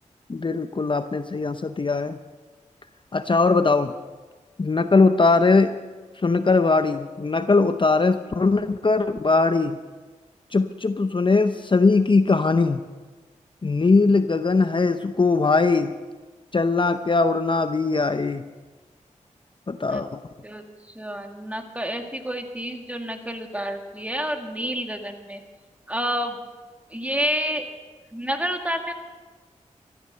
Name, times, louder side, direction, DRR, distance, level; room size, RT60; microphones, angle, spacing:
voice 1, 0.3-2.2 3.1-3.9 4.6-5.7 6.2-9.8 10.5-12.8 13.6-15.9 16.5-18.4 19.7-20.2, left 3 dB, 40° left, 10 dB, 0.7 m, -20 dB
voice 2, 21.0-25.4 25.9-26.4 26.9-27.6 28.1-28.9, equal, 10° right, 4 dB, 2.0 m, -29 dB
14.0 x 13.0 x 6.8 m, 1.3 s
cardioid pair, 50°, 13 cm